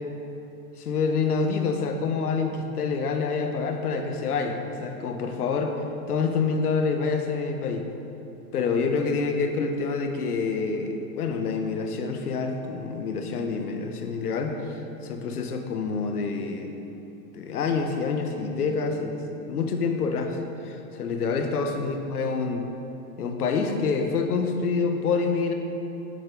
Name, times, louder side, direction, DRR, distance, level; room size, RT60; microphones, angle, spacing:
voice 1, 0.8-5.8 6.1-7.9 8.5-16.8 17.3-20.4 20.6-22.7 23.2-25.5, left 4 dB, 85° left, 5 dB, 1.2 m, -27 dB
8.1 x 7.4 x 5.2 m, 3.0 s
hypercardioid pair, 135°, 44 cm